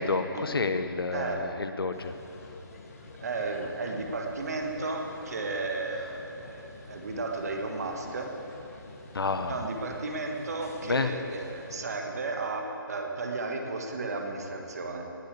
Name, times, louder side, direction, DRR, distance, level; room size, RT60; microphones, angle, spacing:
voice 1, 0.0-2.1 9.1-9.6 10.9-11.1, left 3 dB, 80° left, 9 dB, 1.1 m, -29 dB
voice 2, 1.1-1.5 3.2-8.3 9.5-15.1, right 3 dB, 45° right, 3 dB, 1.7 m, -34 dB
sound 1, 1.9-12.0, left 2 dB, 40° left, 1.7 m, -47 dB
19.5 x 6.9 x 8.5 m, 3.0 s
hypercardioid pair, 170°, 12 cm